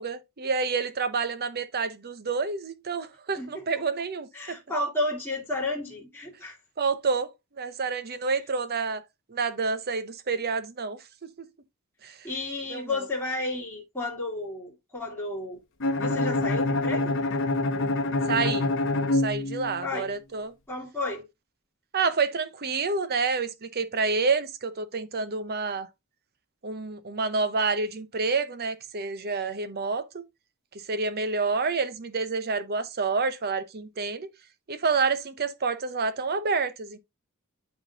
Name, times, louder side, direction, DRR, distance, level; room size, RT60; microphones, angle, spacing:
voice 1, 0.0-4.6 6.8-7.3 7.6-9.0 9.3-11.5 12.0-12.3 12.7-13.1 18.3-18.7 19.1-20.5 21.9-25.9 26.6-30.2 30.9-34.3 34.7-37.0, right 4 dB, 45° right, 0.8 m, -28 dB
voice 2, 4.3-6.6 12.2-15.6 16.0-17.2 19.8-20.1 20.7-21.2, left 2 dB, 10° left, 2.2 m, -32 dB
Bowed string instrument, 15.8-19.9, left 2 dB, 60° left, 1.0 m, -26 dB
10.5 x 3.8 x 2.8 m
head